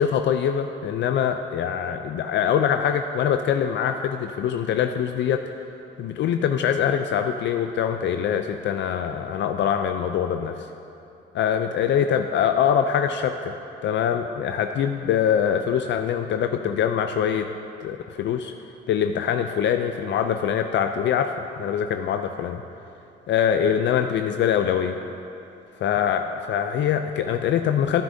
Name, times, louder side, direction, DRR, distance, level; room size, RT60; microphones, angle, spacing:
voice 1, 0.0-5.4 6.0-10.7 11.3-13.5 13.8-17.5 17.8-18.5 18.9-22.6 23.3-25.0 25.8-28.0, left 8 dB, 65° left, 6 dB, 0.4 m, -23 dB
11.5 x 9.7 x 2.7 m, 2.8 s
cardioid pair, 90°, 20 cm